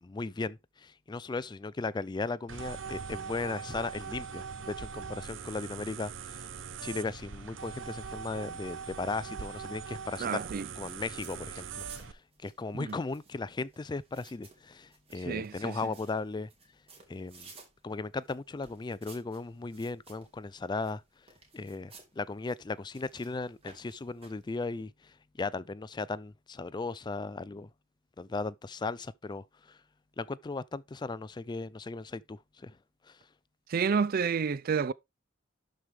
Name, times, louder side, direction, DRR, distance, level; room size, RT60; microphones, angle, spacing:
voice 1, 0.0-6.5 6.8-16.5 17.1-17.5 17.8-21.0 21.5-27.7 28.2-29.8 30.2-32.8 33.1-33.2, left 3 dB, 25° left, 0.4 m, -37 dB
sound 1, 2.5-12.1, right 6 dB, 80° right, 0.8 m, -41 dB
voice 2, 10.2-10.7 12.7-13.0 15.3-15.8 33.7-34.9, right 6 dB, 50° right, 0.4 m, -29 dB
sound 2, 10.3-24.6, right 4 dB, 30° right, 2.6 m, -58 dB
12.0 x 4.8 x 3.5 m
head